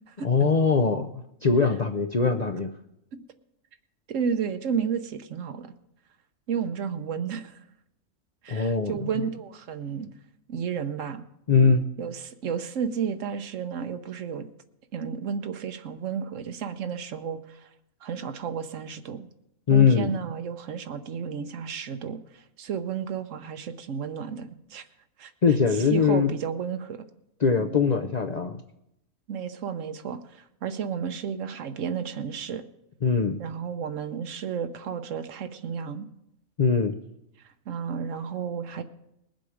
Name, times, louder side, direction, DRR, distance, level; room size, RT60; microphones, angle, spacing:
voice 1, 0.2-2.7 8.5-8.9 11.5-11.9 19.7-20.1 25.4-26.3 27.4-28.6 33.0-33.4 36.6-37.0, left 5 dB, 45° left, 5 dB, 0.6 m, -22 dB
voice 2, 4.1-5.7 6.5-7.6 8.4-10.1 10.5-11.2 12.0-14.5 14.9-17.7 18.0-19.3 19.7-24.8 25.2-25.3 25.9-27.0 27.6-27.8 29.3-32.6 33.4-36.1 37.7-38.8, right 7 dB, 70° right, 10 dB, 1.1 m, -32 dB
20.5 x 7.7 x 5.0 m, 0.82 s
omnidirectional pair, 1.4 m